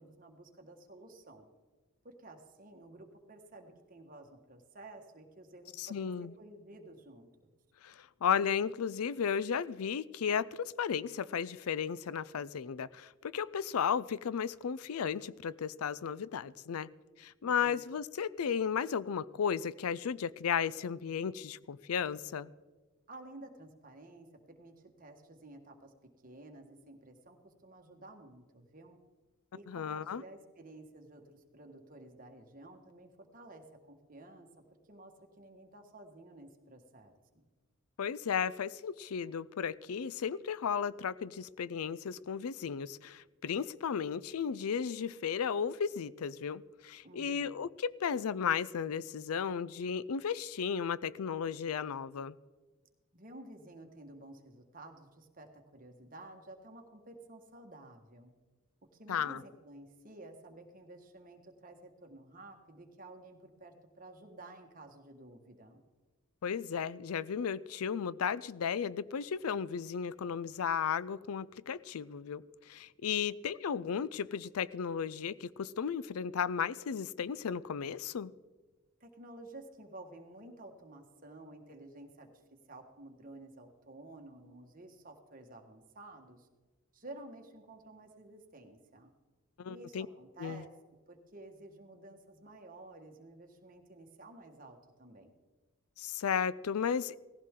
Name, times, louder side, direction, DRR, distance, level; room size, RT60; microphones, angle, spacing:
voice 1, 0.0-1.5 2.0-7.5 17.4-17.8 23.1-29.0 29.5-34.5 34.8-37.5 47.0-47.6 53.1-58.3 58.9-65.8 79.0-86.5 86.9-89.1 89.7-90.7 91.1-95.3, right 2 dB, 40° right, 4 dB, 1.6 m, -52 dB
voice 2, 5.8-6.3 7.8-16.9 17.2-22.5 29.7-30.2 38.0-52.3 59.1-59.4 66.4-78.3 89.6-90.1 90.4-90.6 96.0-97.1, left 7 dB, 90° left, 19 dB, 0.4 m, -34 dB
18.0 x 15.0 x 3.7 m, 1.3 s
head